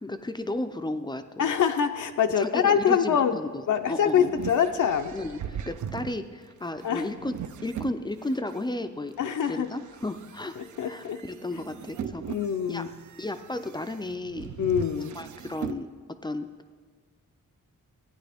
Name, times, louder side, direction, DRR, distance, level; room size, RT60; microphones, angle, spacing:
voice 1, 0.0-1.5 2.4-4.3 5.1-7.4 7.6-9.1 9.4-10.6 10.9-12.2 12.7-12.8 13.2-14.6 15.1-15.9 16.2-16.5, left 2 dB, 15° left, 9 dB, 0.4 m, -33 dB
voice 2, 1.4-3.4 3.7-5.1 6.8-7.0 9.2-9.7 10.8-11.2 12.3-12.9 14.6-15.2, left 8 dB, 70° left, 6 dB, 0.5 m, -24 dB
sound 1, 3.6-8.6 9.2-15.8, right 9 dB, 65° right, 0.5 m, -40 dB
15.0 x 9.4 x 3.4 m, 1.5 s
wide cardioid pair, 140°, 32 cm